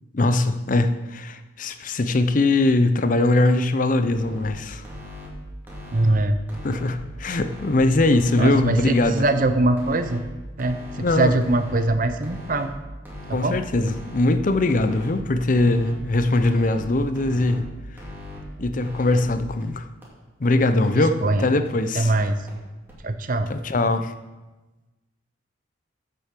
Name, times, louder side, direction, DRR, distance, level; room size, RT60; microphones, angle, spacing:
voice 1, 0.1-4.8 6.6-9.2 11.0-11.3 13.3-17.6 18.6-19.9 20.4-22.1 23.5-24.1, left 2 dB, 45° left, 9 dB, 0.6 m, -21 dB
sound 1, 4.0-4.5 4.8-5.3 5.7-6.1 6.5-6.9 7.3-7.7 8.1-8.6 8.9-9.4 9.8-10.2 10.6-11.0 11.4-11.8 12.2-12.7 13.1-13.5 13.9-14.3 14.7-15.1 15.5-15.9 16.3-16.8 17.2-17.6 18.0-18.4 18.8-19.2 19.6-19.7 20.0-20.1 20.4-20.5 20.8-20.9 21.2-21.3 21.7-21.8 22.1-22.2 22.5-22.6 22.9-23.0 23.3-23.4, left 2 dB, 10° right, 2.6 m, -39 dB
voice 2, 5.9-6.4 8.4-10.2 10.6-12.7 13.3-13.6 20.9-21.5 21.9-22.4 23.0-23.5, right 2 dB, 45° right, 8 dB, 0.7 m, -22 dB
7.7 x 6.9 x 7.4 m, 1.2 s
head